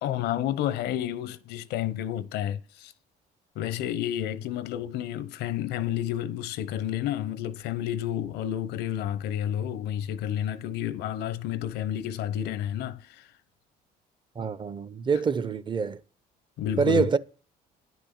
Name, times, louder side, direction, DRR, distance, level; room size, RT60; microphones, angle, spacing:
voice 1, 0.0-2.9 3.6-13.3 16.6-17.1, left 11 dB, 85° left, 0.9 m, -30 dB
voice 2, 14.4-16.0 16.8-17.2, right 5 dB, 30° right, 0.7 m, -26 dB
10.0 x 6.2 x 7.0 m
cardioid pair, 110°, 17 cm